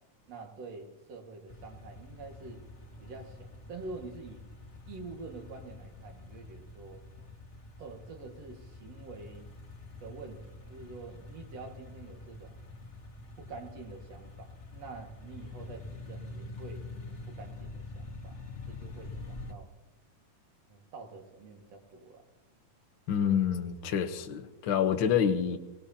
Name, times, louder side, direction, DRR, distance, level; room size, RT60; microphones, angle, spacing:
voice 1, 0.3-2.6 3.0-4.4 4.9-7.0 7.8-9.5 10.0-12.5 13.4-18.3 18.7-19.7 20.7-22.2, right 3 dB, 55° right, 2 dB, 2.7 m, -47 dB
sound 1, 1.5-19.5, left 2 dB, 35° left, 1.2 m, -46 dB
voice 2, 23.1-25.6, left 8 dB, 80° left, 5 dB, 1.1 m, -27 dB
23.5 x 18.5 x 2.8 m, 0.96 s
omnidirectional pair, 3.8 m